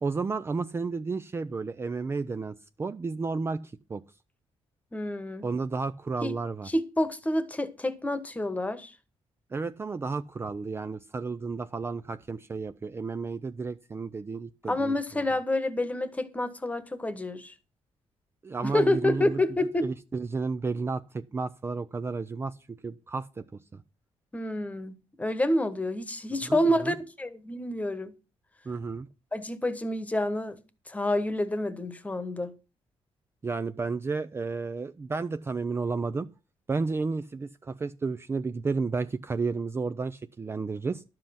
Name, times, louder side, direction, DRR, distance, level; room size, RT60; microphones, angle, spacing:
voice 1, 0.0-4.0 5.4-6.7 9.5-15.3 18.4-19.4 19.8-23.8 26.4-27.0 28.7-29.1 33.4-36.3 36.7-41.0, right 4 dB, 25° right, 0.5 m, -32 dB
voice 2, 4.9-5.5 6.2-6.3 6.7-8.9 14.7-17.5 18.6-19.9 24.3-28.1 29.3-30.6 30.9-32.5, left 1 dB, 15° left, 1.3 m, -28 dB
12.0 x 7.7 x 5.8 m
cardioid pair, 135°, 11 cm